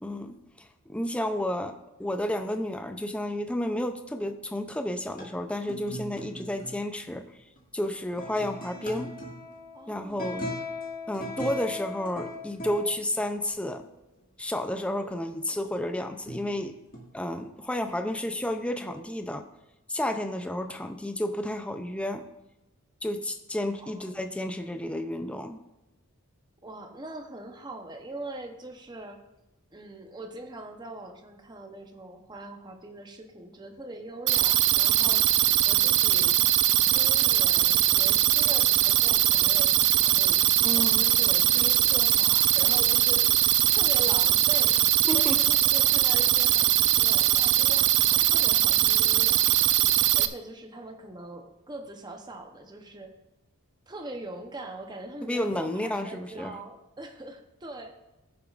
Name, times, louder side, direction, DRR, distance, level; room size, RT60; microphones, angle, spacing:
voice 1, 0.0-7.3 7.7-9.1 9.9-10.5 11.1-13.8 14.4-16.8 17.1-19.5 19.9-22.3 23.0-25.6 40.6-41.0 45.0-45.4 55.2-56.5, left 1 dB, 5° left, 7 dB, 0.4 m, -31 dB
sound 1, 5.2-5.3 5.6-6.8 7.6-7.7 8.1-12.8 14.6-15.8 16.2-16.5 16.9-17.0, left 1 dB, 40° left, 1.8 m, -38 dB
voice 2, 9.7-10.6 23.8-24.2 26.6-29.2 29.7-36.4 36.9-43.3 43.7-44.8 45.1-49.5 50.1-53.1 53.9-58.0, right 1 dB, 20° right, 4 dB, 0.8 m, -42 dB
sound 2, 34.3-50.3, right 13 dB, 50° right, 0.4 m, -21 dB
15.0 x 7.1 x 2.5 m, 1.0 s
head